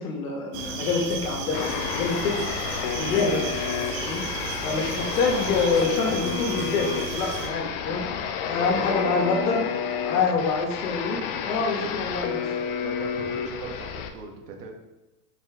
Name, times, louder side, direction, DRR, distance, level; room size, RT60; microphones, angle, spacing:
voice 1, 0.0-2.4 2.9-4.2 4.6-8.0 8.5-9.7 10.0-12.5, left 4 dB, 65° left, 0 dB, 1.8 m, -26 dB
sound 1, 0.5-7.5, right 4 dB, 45° right, 1.3 m, -34 dB
sound 2, 1.5-14.1, left 7 dB, 40° left, 0.5 m, -30 dB
voice 2, 4.6-5.2 8.4-8.7 10.1-10.4 12.8-14.7, right 3 dB, 90° right, 2 dB, 1.5 m, -39 dB
6.6 x 4.5 x 3.6 m, 0.98 s
supercardioid pair, 145°, 47 cm